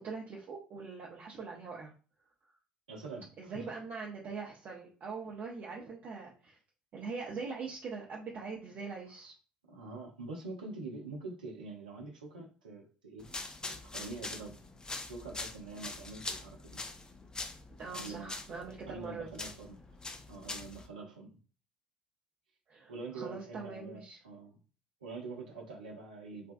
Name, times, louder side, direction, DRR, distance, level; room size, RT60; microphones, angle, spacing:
voice 1, 0.0-1.9 3.4-6.6 6.9-9.3 17.8-19.4 22.7-24.2, right 4 dB, 45° right, 0.6 m, -42 dB
voice 2, 2.9-3.7 9.6-13.3 13.6-14.6 15.1-16.8 17.9-18.6 18.9-19.8 20.3-21.4 22.9-24.6 25.0-26.5, right 3 dB, 80° right, 0.6 m, -45 dB
sound 1, 13.2-20.9, left 3 dB, 20° left, 0.6 m, -44 dB
3.3 x 2.3 x 2.5 m
figure-of-eight pair, 55°, 4 cm